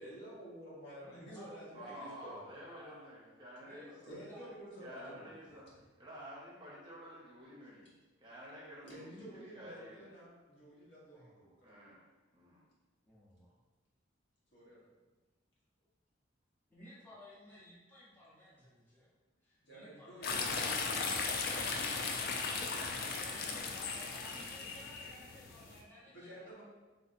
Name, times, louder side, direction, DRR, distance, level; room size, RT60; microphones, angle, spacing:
voice 1, 0.0-2.5 4.0-5.3 8.8-11.8 14.5-14.9 19.6-21.7 22.1-24.6 26.0-26.6, equal, 65° left, -7 dB, 1.1 m, -52 dB
voice 2, 1.0-1.5 2.7-4.5 11.1-11.3 13.1-13.5 16.7-19.1 19.7-20.8 23.3-26.4, left 1 dB, 10° left, -9 dB, 0.7 m, -57 dB
voice 3, 1.7-4.1 4.8-5.6 6.0-9.2 9.5-10.1 11.6-12.7, equal, 25° right, -6 dB, 0.7 m, -51 dB
sound 1, 20.2-25.8, left 4 dB, 50° left, 0.3 m, -37 dB
3.3 x 2.7 x 2.5 m, 1.2 s
head